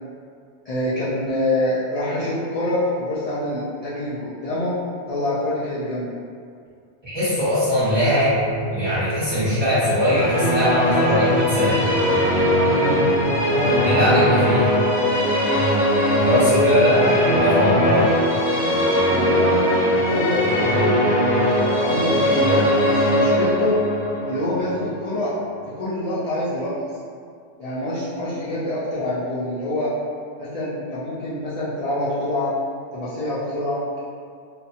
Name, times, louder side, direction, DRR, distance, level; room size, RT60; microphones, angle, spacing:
voice 1, 0.7-4.7 5.1-6.1 12.7-13.0 13.5-14.1 16.3-17.7 19.0-21.5 21.8-23.8 24.3-25.4 25.7-26.7 27.6-29.9 30.4-32.5 32.9-34.0, left 1 dB, 60° left, -10 dB, 0.4 m, -26 dB
voice 2, 7.0-8.4 8.7-11.8 13.8-14.7 16.1-18.0, equal, 25° right, -13 dB, 1.0 m, -21 dB
sound 1, 7.8-14.6, equal, 85° right, 1.0 m, -30 dB
sound 2, 9.8-25.8, equal, 75° left, 1.2 m, -20 dB
2.5 x 2.2 x 2.6 m, 2.3 s
omnidirectional pair, 1.2 m